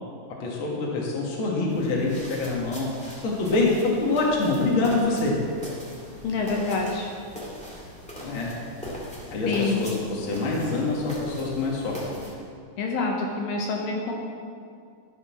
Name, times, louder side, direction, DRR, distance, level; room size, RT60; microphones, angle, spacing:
voice 1, 0.4-2.9 3.2-5.3 8.2-8.5 9.3-12.0, left 3 dB, 45° left, -3 dB, 2.0 m, -25 dB
sound 1, 1.7-12.3, equal, 5° left, 1.1 m, -40 dB
voice 2, 6.2-7.1 9.5-9.8 12.8-14.1, left 3 dB, 75° left, 0 dB, 2.5 m, -26 dB
12.5 x 6.5 x 5.9 m, 2.2 s
omnidirectional pair, 4.3 m